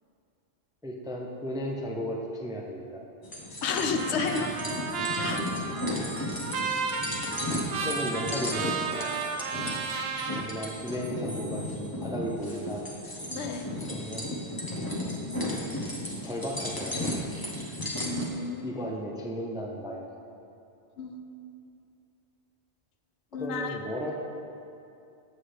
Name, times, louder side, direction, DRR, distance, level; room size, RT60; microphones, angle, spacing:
voice 1, 0.8-3.0 7.8-9.2 10.3-12.8 13.9-14.3 16.2-17.2 17.5-17.7 18.6-20.1 23.4-24.1, equal, 5° right, 0 dB, 0.3 m, -35 dB
sound 1, 3.2-18.3, left 1 dB, 20° left, 1.0 m, -34 dB
voice 2, 3.6-4.5 5.2-5.4 13.3-13.7 18.0-18.7 21.0-21.3 23.3-23.8, left 5 dB, 85° left, 5 dB, 0.9 m, -31 dB
Trumpet, 3.7-10.4, right 5 dB, 70° right, 0.9 m, -33 dB
7.7 x 7.6 x 3.3 m, 2.7 s
omnidirectional pair, 1.1 m